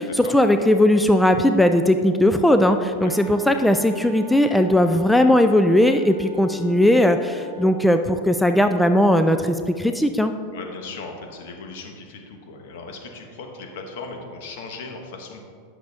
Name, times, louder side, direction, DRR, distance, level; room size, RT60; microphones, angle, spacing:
voice 1, 0.0-10.3, left 1 dB, 5° left, 7 dB, 0.3 m, -18 dB
Wind instrument woodwind instrument, 2.9-7.8, right 4 dB, 30° right, 1.4 m, -43 dB
voice 2, 10.5-15.4, left 4 dB, 65° left, 2 dB, 1.4 m, -37 dB
10.5 x 6.4 x 3.4 m, 2.2 s
supercardioid pair, 135°, 0 cm